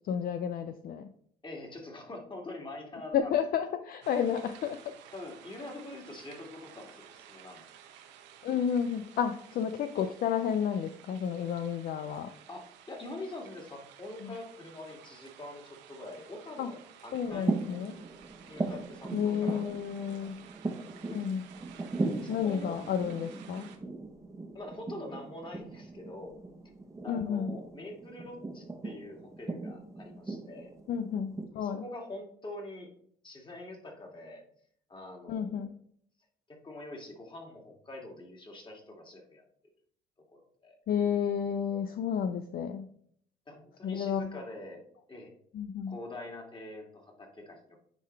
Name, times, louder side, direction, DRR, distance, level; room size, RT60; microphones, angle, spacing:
voice 1, 0.1-1.1 3.1-4.9 8.4-12.3 14.2-14.3 16.6-16.7 17.1-17.9 19.1-20.4 21.1-21.5 22.3-23.7 27.1-27.6 30.9-31.8 35.3-35.7 40.9-42.9 43.8-44.4 45.5-46.0, left 8 dB, 55° left, 8 dB, 0.5 m, -31 dB
voice 2, 1.4-3.4 5.1-7.6 12.5-17.6 18.5-19.6 20.1-20.3 20.8-20.9 21.5-21.7 22.2-22.8 24.5-26.4 27.0-30.7 31.5-32.9 33.2-34.4 34.9-35.6 36.5-39.4 40.3-40.8 43.5-44.8 45.1-45.3 45.9-47.8, left 2 dB, 25° left, 0 dB, 2.4 m, -44 dB
sound 1, 4.0-23.8, right 9 dB, 80° right, 1.0 m, -54 dB
sound 2, 17.2-31.5, right 3 dB, 15° right, 1.2 m, -38 dB
9.8 x 3.7 x 3.4 m, 0.63 s
supercardioid pair, 80°, 18 cm